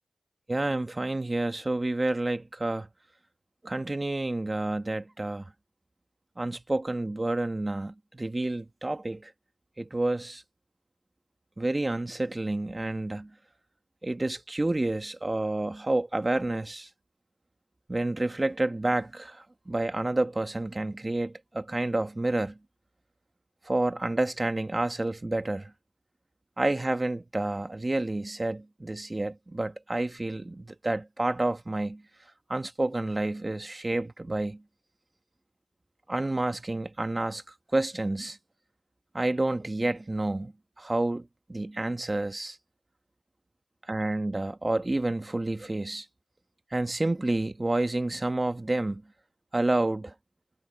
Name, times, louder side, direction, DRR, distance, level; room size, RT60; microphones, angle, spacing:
voice 1, 0.5-2.9 3.6-5.5 6.4-9.3 9.8-10.4 11.6-13.3 14.0-16.9 17.9-22.6 23.6-25.7 26.6-32.0 32.5-34.6 36.1-37.4 37.7-38.4 39.1-40.5 40.8-42.6 43.9-46.1 46.7-49.0 49.5-50.1, right 2 dB, 25° right, 1.4 m, -29 dB
wide cardioid pair, 85°, 0 cm